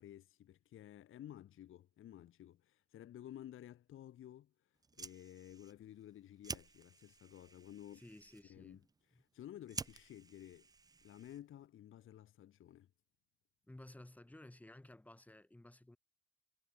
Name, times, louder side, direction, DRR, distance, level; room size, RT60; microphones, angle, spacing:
voice 1, 0.0-8.0 8.5-8.8 9.1-10.7 11.0-12.9, left 11 dB, 45° left, 1.3 m, -54 dB
Fire, 4.7-11.7, right 4 dB, 15° right, 0.6 m, -51 dB
voice 2, 7.9-8.8 9.1-9.2 13.7-16.0, left 1 dB, 5° left, 1.9 m, -56 dB
cardioid pair, 135°, 30 cm